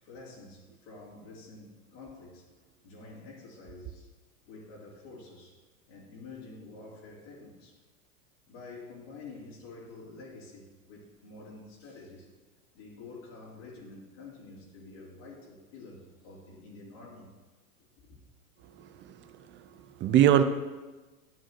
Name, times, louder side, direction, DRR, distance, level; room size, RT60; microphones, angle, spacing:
voice 1, 0.0-2.5 2.8-4.1 4.5-5.6 5.9-7.8 8.5-12.3 12.7-17.3 17.9-18.2, left 3 dB, 55° left, -6 dB, 3.1 m, -48 dB
voice 2, 18.6-20.4, right 10 dB, 25° right, 10 dB, 0.6 m, -25 dB
13.0 x 8.8 x 3.0 m, 1.2 s
hypercardioid pair, 100°, 44 cm